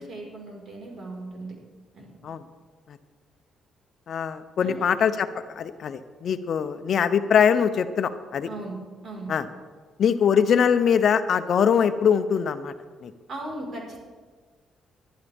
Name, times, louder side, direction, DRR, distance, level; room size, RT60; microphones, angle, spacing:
voice 1, 0.0-1.5 1.9-2.1 4.6-4.8 8.4-8.8 9.0-9.3 13.3-14.0, right 2 dB, 55° right, -1 dB, 4.7 m, -37 dB
voice 2, 4.1-8.5 9.3-9.5 10.0-12.7 13.0-13.1, left 7 dB, 60° left, 11 dB, 0.7 m, -22 dB
19.5 x 11.5 x 3.6 m, 1.5 s
cardioid pair, 90°, 0 cm